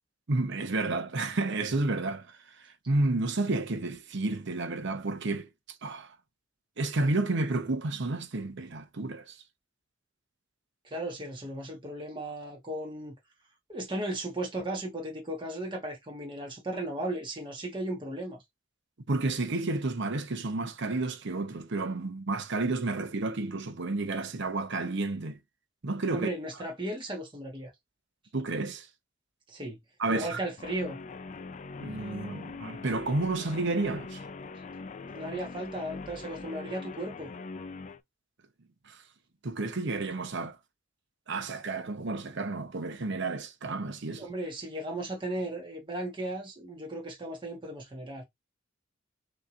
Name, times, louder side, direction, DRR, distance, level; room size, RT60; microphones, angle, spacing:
voice 1, 0.3-5.5 5.8-6.1 6.8-9.4 19.1-25.4 25.8-26.3 28.3-28.9 30.0-30.4 31.8-34.2 38.9-39.0 39.4-40.6 41.3-44.3, right 2 dB, 65° right, 0.8 m, -31 dB
voice 2, 10.8-13.1 13.7-18.4 26.1-27.7 29.5-29.8 30.1-31.0 35.1-37.3 44.2-48.2, right 1 dB, 25° right, 1.3 m, -36 dB
Guitar, 30.6-38.0, left 3 dB, 40° left, 0.4 m, -42 dB
6.3 x 3.0 x 2.5 m
head